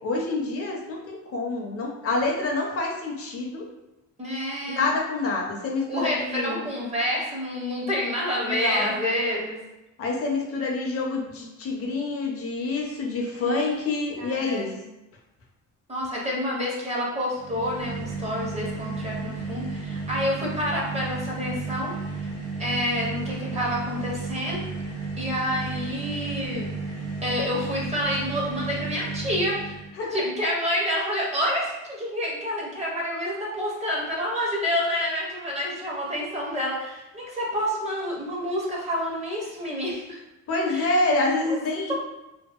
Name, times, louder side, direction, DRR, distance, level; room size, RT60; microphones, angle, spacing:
voice 1, 0.0-3.7 4.7-6.6 8.4-8.9 10.0-14.7 30.0-30.2 40.5-41.9, left 3 dB, 45° left, 0 dB, 0.5 m, -27 dB
voice 2, 4.2-4.9 5.9-9.6 13.4-13.9 14.2-14.9 15.9-21.9 22.6-24.6 25.2-26.7 27.2-29.8 30.1-40.2 40.7-40.9 41.5-41.6, equal, 20° right, -3 dB, 0.5 m, -28 dB
sound 1, 17.3-29.9, right 4 dB, 65° right, 0.7 m, -33 dB
2.6 x 2.3 x 2.3 m, 0.96 s
cardioid pair, 140°, 32 cm